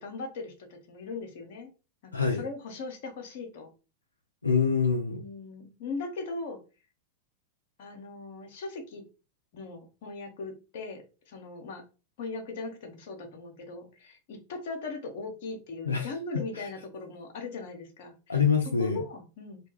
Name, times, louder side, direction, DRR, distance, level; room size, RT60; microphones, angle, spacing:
voice 1, 0.0-1.7 2.0-3.7 5.1-6.6 7.8-9.0 9.5-11.8 12.2-18.4 18.8-19.6, left 3 dB, 50° left, 0.7 m, -39 dB
voice 2, 2.1-2.4 4.4-5.2 15.9-16.7 18.3-19.0, left 5 dB, 80° left, 0.3 m, -26 dB
2.2 x 2.1 x 3.1 m
figure-of-eight pair, 90°, 0 cm